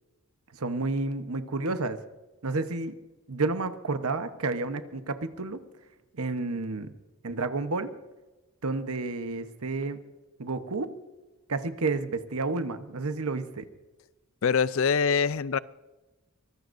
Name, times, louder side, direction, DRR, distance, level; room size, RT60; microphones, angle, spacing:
voice 1, 0.5-2.0 2.4-3.0 3.3-5.6 6.1-6.9 7.2-7.9 8.6-10.0 10.4-10.9 11.5-13.7, right 3 dB, 80° right, 9 dB, 1.1 m, -30 dB
voice 2, 14.4-15.6, left 6 dB, 65° left, 18 dB, 0.5 m, -24 dB
24.0 x 19.0 x 2.6 m, 1.1 s
head